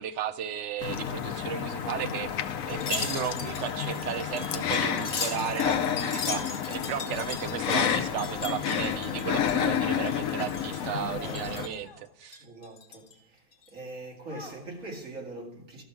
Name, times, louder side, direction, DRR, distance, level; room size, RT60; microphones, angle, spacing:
voice 1, 0.0-2.3 2.7-12.4, right 9 dB, 65° right, 0.7 m, -34 dB
sound 1, 0.8-11.7, left 8 dB, 60° left, 1.0 m, -30 dB
Wind chime, 2.7-9.8 10.1-10.9 11.2-11.8 12.2-13.1 13.5-13.7, left 4 dB, 45° left, 1.9 m, -38 dB
Human voice, 7.1-7.7 8.4-8.9 9.5-10.1 10.8-11.1 11.8-12.2 12.9-13.0 14.3-14.9, left 2 dB, 5° right, 5.1 m, -49 dB
voice 2, 11.0-11.8 12.4-13.4 13.7-15.8, right 2 dB, 50° right, 2.5 m, -42 dB
13.5 x 6.3 x 5.9 m
omnidirectional pair, 1.9 m